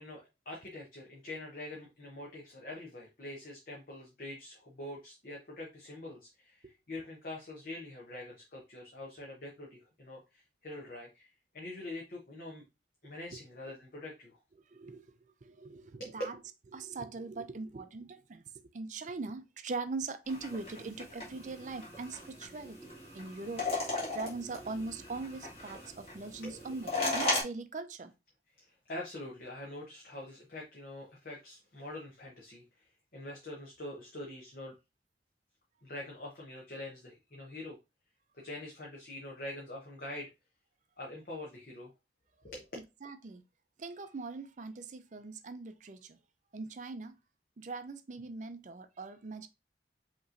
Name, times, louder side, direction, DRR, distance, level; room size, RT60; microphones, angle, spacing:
voice 1, 0.0-12.7 13.0-14.4 16.0-16.2 26.4-26.8 28.6-34.8 35.8-37.8 38.3-40.3 41.0-41.9 42.4-42.7, left 1 dB, 50° left, 0.9 m, -44 dB
voice 2, 14.7-16.4 16.7-18.4 18.7-28.1 43.0-43.4 43.8-46.2 46.5-47.2 47.6-49.5, right 3 dB, 40° right, 0.4 m, -41 dB
sound 1, 20.3-27.4, left 2 dB, 35° left, 1.6 m, -37 dB
5.1 x 3.0 x 2.5 m
head